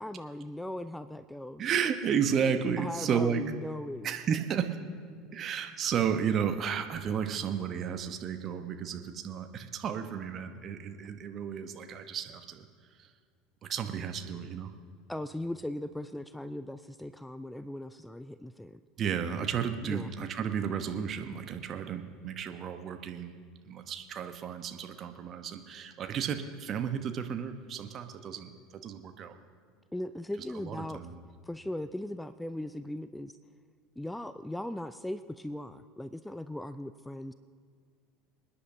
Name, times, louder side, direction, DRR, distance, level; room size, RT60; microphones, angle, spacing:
voice 1, 0.0-1.6 2.8-4.1 15.1-18.8 19.8-20.1 29.9-31.1 31.4-33.4 34.0-37.3, left 1 dB, 5° left, 13 dB, 0.4 m, -38 dB
voice 2, 1.6-3.4 4.0-4.8 5.3-12.7 13.6-14.7 19.0-23.4 23.6-29.3 30.6-31.2, right 7 dB, 40° right, 7 dB, 1.0 m, -33 dB
26.5 x 9.8 x 2.8 m, 2.1 s
figure-of-eight pair, 70°, 0 cm